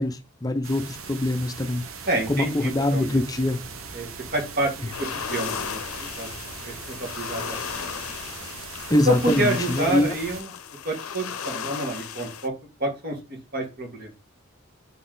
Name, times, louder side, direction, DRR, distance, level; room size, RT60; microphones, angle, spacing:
voice 1, 0.0-1.8 2.3-3.6 8.9-10.1, left 1 dB, 20° left, 0.6 m, -24 dB
sound 1, 0.6-10.4, right 5 dB, 70° right, 0.9 m, -40 dB
voice 2, 2.0-3.2 3.9-4.1 4.3-5.8 6.2-6.3 6.6-7.6 7.8-8.0 9.1-10.5 10.8-12.5 12.8-14.1, right 1 dB, 45° right, 1.9 m, -28 dB
sound 2, 3.3-8.4, left 2 dB, ahead, 1.2 m, -51 dB
sound 3, 4.9-12.5, left 7 dB, 90° left, 0.6 m, -35 dB
5.8 x 4.2 x 3.9 m
head